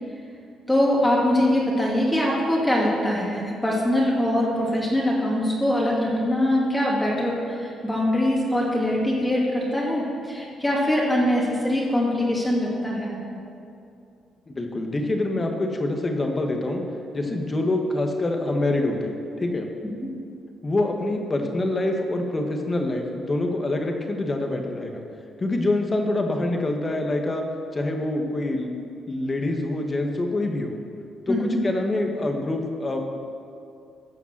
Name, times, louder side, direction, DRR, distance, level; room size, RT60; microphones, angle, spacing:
voice 1, 0.7-13.2 20.0-20.1 31.3-31.6, left 1 dB, 10° left, -4 dB, 2.5 m, -23 dB
voice 2, 14.5-16.8 17.1-19.7 20.6-25.0 25.4-27.4 27.7-28.7 29.1-30.8 31.3-33.0, left 2 dB, 30° left, 3 dB, 1.7 m, -25 dB
14.5 x 5.8 x 7.5 m, 2.5 s
cardioid pair, 90°, 0 cm